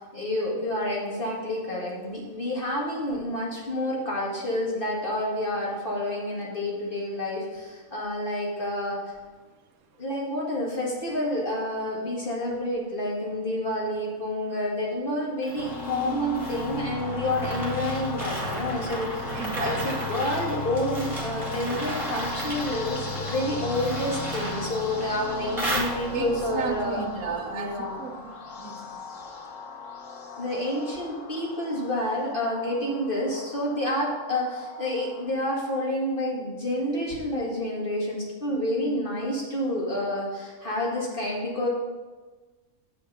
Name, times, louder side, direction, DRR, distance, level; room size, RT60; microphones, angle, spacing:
voice 1, 0.1-9.1 10.0-27.0 27.5-28.0 30.4-41.7, left 1 dB, 35° left, -4 dB, 2.0 m, -29 dB
sound 1, 15.4-26.4, right 1 dB, 20° right, 1.9 m, -35 dB
sound 2, 15.6-35.3, left 3 dB, 60° left, 1.4 m, -37 dB
voice 2, 19.3-19.9 26.1-28.3 28.6-29.0, right 6 dB, 75° right, 5 dB, 1.3 m, -34 dB
7.5 x 5.0 x 6.6 m, 1.3 s
omnidirectional pair, 1.5 m